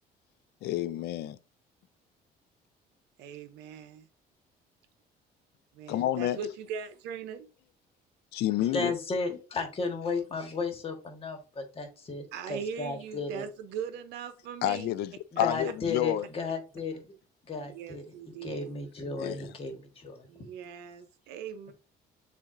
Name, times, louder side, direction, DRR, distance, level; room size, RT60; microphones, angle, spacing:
voice 1, 0.6-1.4 5.9-6.4 8.3-8.9 14.6-15.1 15.4-16.2 19.2-19.4, left 13 dB, 75° left, 0.4 m, -29 dB
voice 2, 3.2-4.1 5.7-7.5 12.3-15.0 15.4-15.5 17.7-18.7 20.3-21.7, right 7 dB, 85° right, 0.7 m, -40 dB
voice 3, 8.6-13.4 15.3-17.0 17.4-20.3, left 4 dB, 35° left, 1.3 m, -34 dB
7.2 x 2.5 x 2.5 m
cardioid pair, 110°, 17 cm